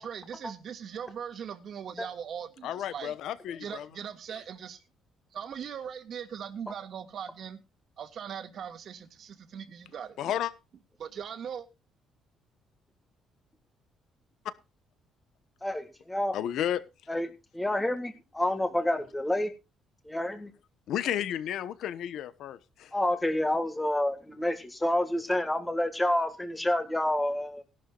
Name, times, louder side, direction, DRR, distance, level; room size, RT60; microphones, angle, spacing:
voice 1, 0.0-3.1 3.6-4.8 5.3-7.6 8.0-10.2 11.0-11.7, right 8 dB, 50° right, 2.0 m, -40 dB
voice 2, 2.6-3.9 10.2-10.5 16.3-16.8 20.9-22.9, left 10 dB, 70° left, 1.0 m, -32 dB
voice 3, 15.6-16.4 17.1-17.3 17.5-19.5 20.1-20.5 22.9-27.6, left 1 dB, 10° left, 1.8 m, -28 dB
17.5 x 12.0 x 2.4 m
cardioid pair, 145°, 0 cm